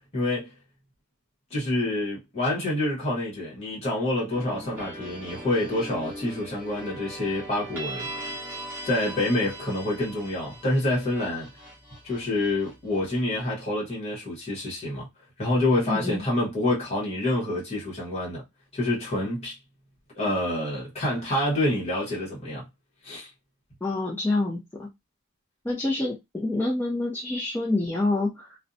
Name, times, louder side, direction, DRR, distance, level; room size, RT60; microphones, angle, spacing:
voice 1, 0.1-0.5 1.5-8.1 8.8-11.5 12.0-15.1 15.4-18.4 18.7-19.6 20.1-22.7 23.0-23.3, left 1 dB, 30° left, 1.1 m, -27 dB
sound 1, 4.3-13.2, right 1 dB, 10° right, 1.1 m, -40 dB
voice 2, 15.9-16.2 23.8-24.9 25.6-28.6, left 2 dB, 10° left, 0.4 m, -27 dB
2.6 x 2.1 x 2.6 m
head